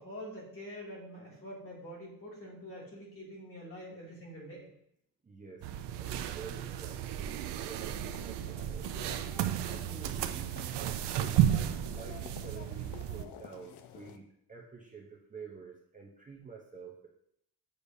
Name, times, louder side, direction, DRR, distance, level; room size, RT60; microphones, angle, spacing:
voice 1, 0.0-4.7 9.9-10.3, equal, 35° left, -5 dB, 2.6 m, -46 dB
voice 2, 5.2-5.7 5.9-9.2 9.7-17.1, right 5 dB, 20° right, -1 dB, 0.7 m, -49 dB
sound 1, 5.6-13.2, right 11 dB, 90° right, 0.6 m, -33 dB
sound 2, 8.0-14.2, left 10 dB, 85° left, 0.7 m, -51 dB
6.8 x 6.5 x 2.7 m, 0.73 s
cardioid pair, 150°, 40 cm